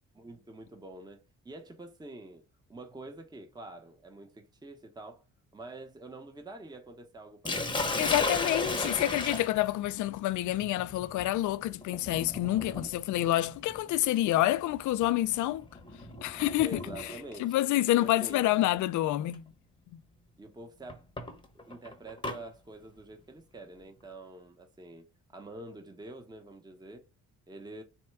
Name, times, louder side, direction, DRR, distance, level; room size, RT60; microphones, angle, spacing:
voice 1, 0.1-2.4 2.7-5.2 5.5-8.8 16.6-17.6 18.0-18.4 20.4-21.1 21.5-25.0 25.3-27.0 27.5-27.8, right 1 dB, 15° right, 0.8 m, -46 dB
Sink (filling or washing), 7.5-17.4 18.5-18.8 19.3-19.4 20.9-22.4, left 2 dB, 15° left, 0.9 m, -36 dB
voice 2, 8.0-15.6 16.2-16.8 17.4-19.4 19.9-20.0, left 15 dB, 75° left, 0.5 m, -28 dB
4.3 x 2.2 x 4.5 m
cardioid pair, 90°, 30 cm